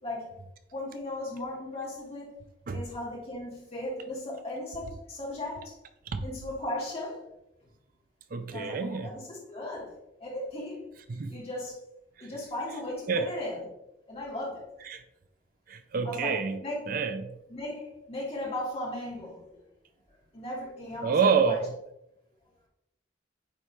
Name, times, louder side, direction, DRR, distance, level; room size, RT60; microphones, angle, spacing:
voice 1, 0.7-2.3 2.7-5.7 6.2-7.2 8.5-9.9 10.2-11.8 12.2-13.7 14.1-14.7 16.0-16.8 17.5-19.6 20.3-21.6, left 1 dB, 35° left, -5 dB, 2.4 m, -37 dB
voice 2, 8.3-9.1 11.1-11.4 12.2-12.3 13.1-13.3 14.9-15.0 15.7-16.6 16.9-17.4 21.0-21.7, right 5 dB, 50° right, 9 dB, 0.4 m, -27 dB
8.8 x 3.3 x 3.2 m, 0.86 s
head